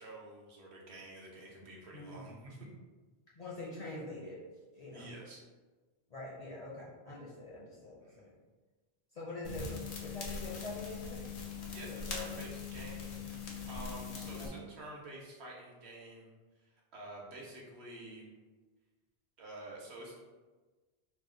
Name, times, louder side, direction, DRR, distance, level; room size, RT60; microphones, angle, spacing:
voice 1, 0.0-2.6 4.9-5.4 8.0-8.3 11.7-13.2 13.7-16.3 16.9-18.3 19.4-20.2, right 1 dB, 70° right, -2 dB, 1.0 m, -49 dB
voice 2, 1.9-2.3 3.4-4.4 4.7-5.1 6.1-8.3 9.1-11.3 11.9-12.5, left 2 dB, 50° left, -6 dB, 0.5 m, -45 dB
sound 1, 9.4-14.5, left 5 dB, 80° left, 0.9 m, -41 dB
2.7 x 2.1 x 3.6 m, 1.3 s
omnidirectional pair, 1.1 m